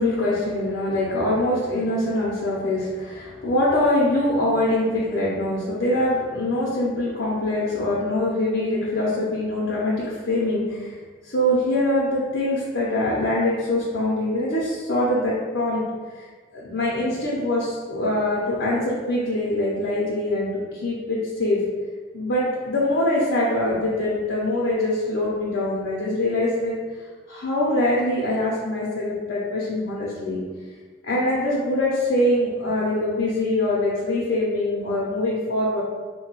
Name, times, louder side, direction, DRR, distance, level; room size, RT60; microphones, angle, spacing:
voice 1, 0.0-10.9 11.2-15.8 16.5-21.6 22.1-26.7 27.3-30.4 31.0-35.8, left 1 dB, 85° left, -7 dB, 0.6 m, -23 dB
3.0 x 2.2 x 3.0 m, 1.5 s
head